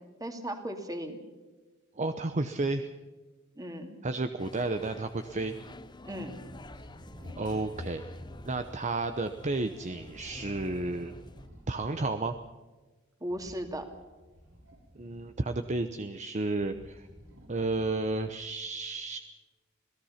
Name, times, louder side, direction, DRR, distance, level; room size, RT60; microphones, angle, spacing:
voice 1, 0.2-1.2 3.6-4.0 6.0-6.3 13.2-13.9, equal, 20° right, 5 dB, 2.5 m, -36 dB
voice 2, 2.0-2.9 4.0-5.5 7.4-8.0 8.4-11.1 11.7-12.3 14.9-17.1 17.5-19.2, right 2 dB, 35° right, 8 dB, 0.8 m, -32 dB
sound 1, 4.4-11.5, left 2 dB, 20° left, 0.8 m, -47 dB
sound 2, 6.4-8.7 9.9-12.2 13.2-15.5 16.1-18.5, equal, 80° right, 6.3 m, -52 dB
27.0 x 17.5 x 5.8 m, 1.3 s
head